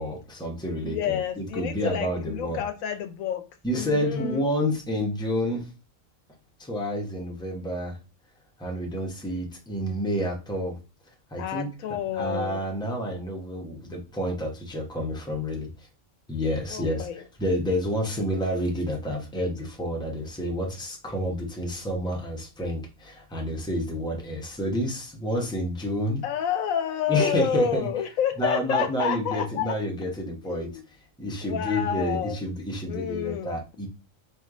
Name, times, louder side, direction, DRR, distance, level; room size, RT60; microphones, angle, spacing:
voice 1, 0.0-2.6 3.6-5.7 6.6-8.0 8.6-10.8 11.3-11.7 12.1-15.9 16.3-17.1 17.4-26.2 27.1-28.1 28.4-33.9, equal, 5° left, 0 dB, 0.8 m, -29 dB
voice 2, 0.8-3.4 3.7-4.5 11.4-12.6 16.7-17.2 26.2-29.8 30.5-30.8 31.4-32.5 32.9-33.5, left 10 dB, 80° left, 9 dB, 1.0 m, -29 dB
3.3 x 3.0 x 3.7 m, 0.32 s
omnidirectional pair, 1.4 m